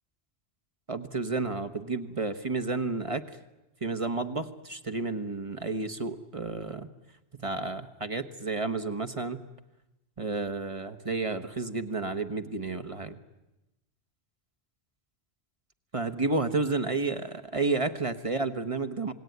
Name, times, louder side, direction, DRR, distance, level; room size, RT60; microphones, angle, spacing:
voice 1, 0.9-3.2 3.8-6.9 7.4-9.4 10.2-13.2 15.9-19.1, right 3 dB, 30° right, 9 dB, 1.3 m, -31 dB
27.5 x 19.5 x 9.4 m, 0.97 s
omnidirectional pair, 1.1 m